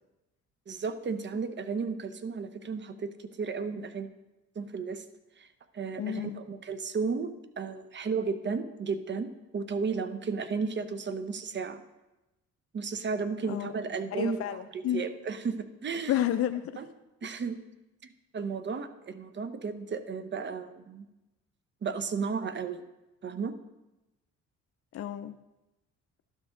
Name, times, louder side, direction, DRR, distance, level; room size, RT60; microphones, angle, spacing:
voice 1, 0.7-4.1 4.6-5.0 5.4-5.5 5.7-11.8 12.7-14.4 14.7-16.2 16.8-16.9 17.2-17.6 18.0-21.1 21.8-22.8 23.2-23.5, right 5 dB, 40° right, 11 dB, 0.8 m, -34 dB
voice 2, 6.0-6.4 13.5-13.7 14.1-15.0 16.1-16.8 24.9-25.3, left 11 dB, 50° left, 8 dB, 0.5 m, -31 dB
12.0 x 6.3 x 3.8 m, 0.99 s
cardioid pair, 90°, 30 cm